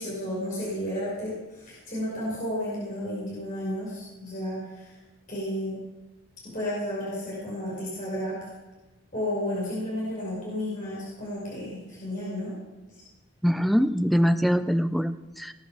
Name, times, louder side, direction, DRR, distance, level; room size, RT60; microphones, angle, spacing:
voice 1, 0.0-5.0 5.3-5.8 6.5-8.4 9.1-12.5, left 1 dB, 40° left, -7 dB, 5.6 m, -32 dB
voice 2, 13.4-15.5, equal, ahead, 10 dB, 0.5 m, -23 dB
19.0 x 8.5 x 7.1 m, 1.1 s
head